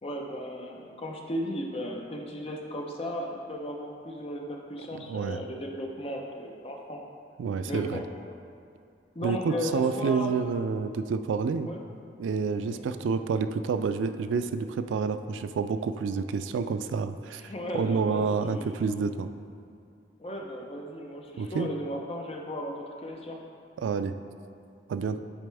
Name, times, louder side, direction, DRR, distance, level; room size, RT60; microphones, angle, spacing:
voice 1, 0.0-7.0 7.7-8.0 9.1-10.3 11.6-11.8 12.7-12.9 17.3-18.8 20.2-23.4, equal, 30° left, 0 dB, 0.6 m, -36 dB
voice 2, 5.0-5.4 7.4-8.0 9.2-11.7 12.2-19.3 21.4-21.7 23.8-24.2 24.9-25.2, right 5 dB, 80° right, 10 dB, 0.3 m, -29 dB
9.3 x 4.2 x 3.4 m, 2.4 s
head